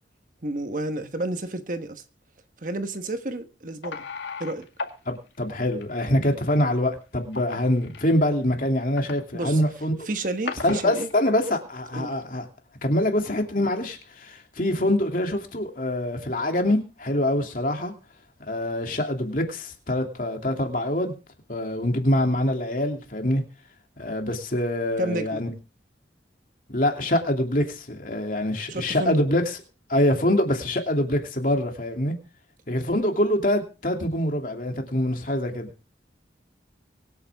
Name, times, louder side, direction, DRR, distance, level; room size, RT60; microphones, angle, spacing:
voice 1, 0.4-2.0 2.6-4.0 4.4-4.7 9.3-9.6 10.1-11.1 11.9-12.1 25.0-25.4 28.7-29.2, right 2 dB, 45° right, 1.3 m, -30 dB
sound 1, 3.8-4.9 5.2-5.4 5.8-5.9 7.3-8.1 8.5-9.1 10.0-10.2 10.5-11.4, left 4 dB, 80° left, 2.2 m, -35 dB
voice 2, 5.1-10.1 10.6-12.5 12.8-17.9 18.5-21.2 21.5-23.4 24.0-25.5 26.7-29.6 29.9-32.1 32.7-35.7, left 1 dB, 45° left, 2.8 m, -25 dB
24.5 x 8.7 x 3.6 m
head